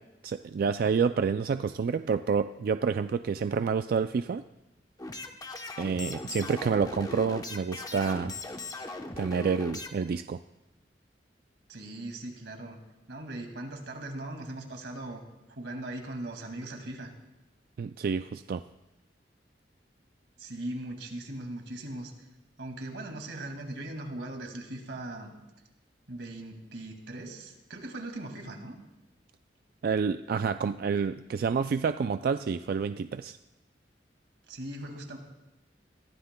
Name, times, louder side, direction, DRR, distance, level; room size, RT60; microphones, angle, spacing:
voice 1, 0.2-4.4 5.8-8.3 9.2-10.4 17.8-18.6 29.8-33.4, right 5 dB, 55° right, 10 dB, 0.3 m, -28 dB
sound 1, 5.0-9.9, left 3 dB, 20° left, 0.9 m, -39 dB
voice 2, 11.7-12.8 13.1-15.2 15.5-17.1 20.4-22.1 22.6-25.3 26.1-28.8 34.5-35.2, right 1 dB, 90° right, 3 dB, 2.2 m, -39 dB
22.5 x 15.5 x 2.2 m, 1.0 s
head